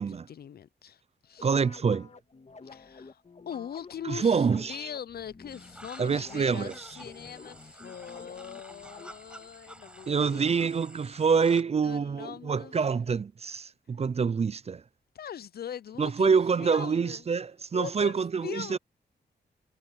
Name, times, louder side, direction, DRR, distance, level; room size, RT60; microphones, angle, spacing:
voice 1, 0.3-1.5 2.6-10.5 11.8-12.7 15.1-17.2 17.7-18.8, left 9 dB, 60° left, 0.4 m, -41 dB
sound 1, 1.4-9.5, left 4 dB, 35° left, 1.8 m, -50 dB
voice 2, 1.4-2.1 4.0-4.8 6.0-6.9 10.1-14.8 16.0-18.8, right 5 dB, 35° right, 0.4 m, -26 dB
sound 2, 5.5-11.6, right 1 dB, 5° right, 4.8 m, -50 dB
wide cardioid pair, 115°, 19 cm